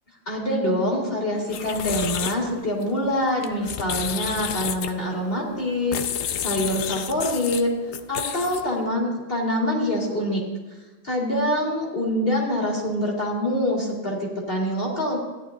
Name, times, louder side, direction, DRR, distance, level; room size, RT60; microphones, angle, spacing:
voice 1, 0.3-6.0 6.4-7.7 8.1-10.4 11.0-15.2, left 1 dB, 35° left, -3 dB, 3.1 m, -25 dB
sound 1, 1.4-8.8, left 9 dB, 65° left, 0.8 m, -31 dB
16.0 x 11.0 x 2.7 m, 1.2 s
omnidirectional pair, 1.7 m